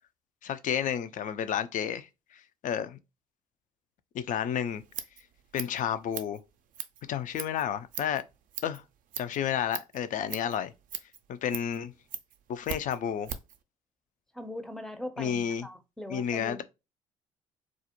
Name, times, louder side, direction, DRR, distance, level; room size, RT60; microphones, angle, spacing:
voice 1, 0.4-2.1 2.6-3.0 4.1-4.8 5.5-6.4 7.1-8.2 8.6-8.8 9.2-10.7 11.3-11.9 12.5-13.3 15.2-15.7 16.1-16.6, left 9 dB, 50° left, 0.4 m, -31 dB
Scissors, 4.7-13.6, right 9 dB, 50° right, 0.4 m, -42 dB
voice 2, 14.3-16.6, left 1 dB, ahead, 0.6 m, -40 dB
2.4 x 2.0 x 2.9 m
hypercardioid pair, 55°, 17 cm